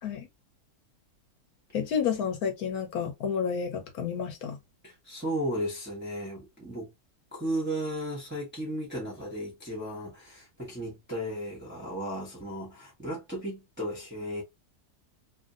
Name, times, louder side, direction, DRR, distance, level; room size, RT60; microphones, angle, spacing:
voice 1, 1.7-4.6, left 7 dB, 70° left, 1.2 m, -30 dB
voice 2, 4.8-6.9 7.3-14.4, equal, 10° right, 0.7 m, -35 dB
2.7 x 2.7 x 2.5 m
omnidirectional pair, 1.8 m